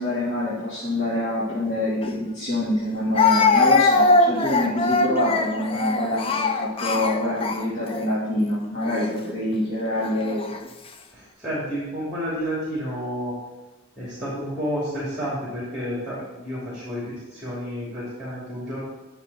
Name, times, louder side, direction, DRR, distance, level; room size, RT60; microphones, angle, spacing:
voice 1, 0.0-10.5, left 1 dB, 50° left, -11 dB, 2.4 m, -26 dB
Speech, 2.0-2.1 3.2-8.0 8.8-9.1 10.0-10.6, left 3 dB, 25° left, 0.4 m, -21 dB
voice 2, 11.1-13.3 14.0-18.8, equal, 5° right, -7 dB, 2.5 m, -30 dB
9.7 x 6.4 x 4.1 m, 1.1 s
head